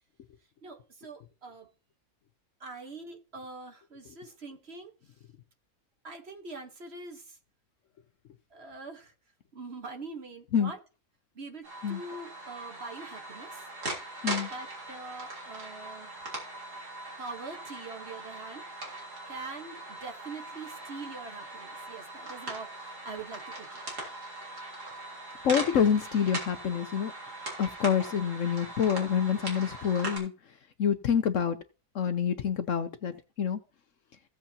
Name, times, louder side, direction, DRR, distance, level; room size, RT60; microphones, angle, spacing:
voice 1, 0.6-1.7 2.6-4.9 6.0-7.4 8.5-9.1 9.5-10.8 11.3-13.7 14.4-16.1 17.2-18.9 19.3-23.8, right 3 dB, 45° right, 1.4 m, -43 dB
sound 1, 11.6-30.2, right 2 dB, 90° right, 3.9 m, -40 dB
voice 2, 25.4-27.1 27.6-30.3 30.8-31.6 31.9-33.6, left 7 dB, 60° left, 1.0 m, -27 dB
16.0 x 8.0 x 2.8 m
omnidirectional pair, 1.7 m